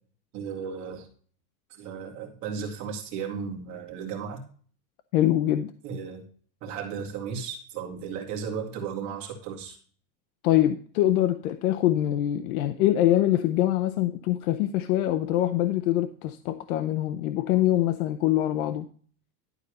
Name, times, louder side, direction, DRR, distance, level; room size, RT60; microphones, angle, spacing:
voice 1, 0.3-1.1 1.7-4.4 5.8-6.2 6.6-9.8, right 6 dB, 35° right, 2.2 m, -35 dB
voice 2, 5.1-5.7 10.4-18.9, left 13 dB, 60° left, 0.7 m, -24 dB
12.0 x 4.2 x 6.4 m
supercardioid pair, 170°, 49 cm